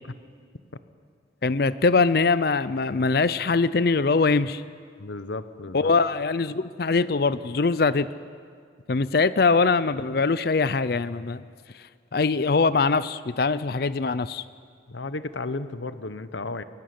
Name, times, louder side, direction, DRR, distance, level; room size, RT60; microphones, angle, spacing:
voice 1, 1.4-4.6 5.7-8.1 8.9-11.4 12.1-14.4, left 4 dB, 55° left, 15 dB, 0.5 m, -22 dB
voice 2, 5.0-5.9 14.9-16.6, left 3 dB, 80° left, 12 dB, 1.0 m, -33 dB
23.0 x 16.5 x 9.6 m, 2.1 s
head